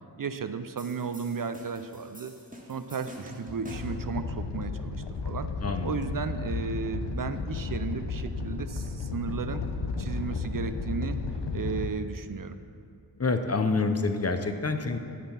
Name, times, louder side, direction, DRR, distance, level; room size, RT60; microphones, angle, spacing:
voice 1, 0.2-2.3 2.7-5.5 5.8-9.6 10.0-11.2 11.5-12.6, right 5 dB, 50° right, 10 dB, 0.5 m, -34 dB
sound 1, 0.8-4.1, equal, 20° right, 1.5 m, -45 dB
Animal, 3.7-11.9, left 4 dB, 75° left, 0.7 m, -33 dB
voice 2, 5.6-6.0 13.2-15.0, left 3 dB, 35° left, 7 dB, 0.6 m, -27 dB
8.7 x 7.3 x 5.7 m, 2.4 s
wide cardioid pair, 55°, 42 cm